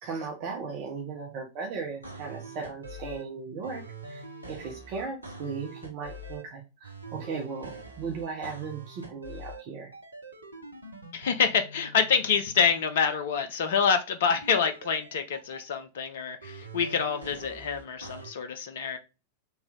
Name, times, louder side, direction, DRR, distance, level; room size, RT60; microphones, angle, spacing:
voice 1, 0.0-4.2 4.5-9.9, right 5 dB, 45° right, 0.8 m, -37 dB
sound 1, 2.0-3.2 3.6-6.4 6.8-9.6 9.9-12.8 14.3-15.8 16.4-18.3, right 2 dB, 85° right, 0.7 m, -44 dB
voice 2, 11.1-19.0, left 6 dB, 60° left, 0.4 m, -27 dB
3.1 x 3.0 x 3.5 m
figure-of-eight pair, 90°, 0 cm